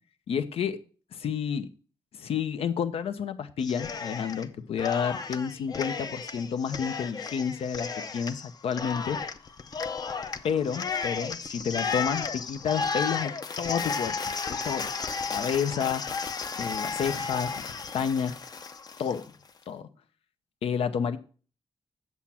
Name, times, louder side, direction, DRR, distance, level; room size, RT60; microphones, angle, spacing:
voice 1, 0.3-0.8 1.1-1.7 2.1-9.2 10.4-14.2 14.5-14.9 15.3-16.1 16.6-18.4 19.0-19.2 19.7-19.9 20.6-21.2, left 7 dB, 80° left, 10 dB, 0.8 m, -30 dB
Cheering, 3.6-4.5 4.8-19.2, left 5 dB, 40° left, 0.6 m, -33 dB
8.2 x 7.2 x 4.3 m, 0.39 s
cardioid pair, 110°, 10 cm